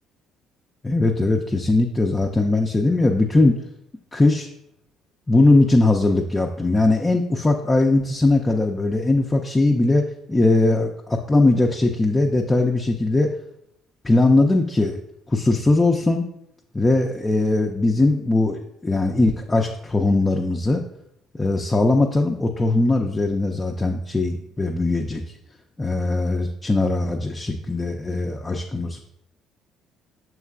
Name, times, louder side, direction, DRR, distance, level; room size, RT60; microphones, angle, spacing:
voice 1, 0.8-3.6 4.1-4.5 5.3-13.3 14.0-15.0 15.3-16.3 16.7-20.8 21.3-25.2 25.8-29.0, left 2 dB, 20° left, 1 dB, 0.4 m, -20 dB
6.3 x 3.1 x 2.4 m, 0.78 s
hypercardioid pair, 55°, 0 cm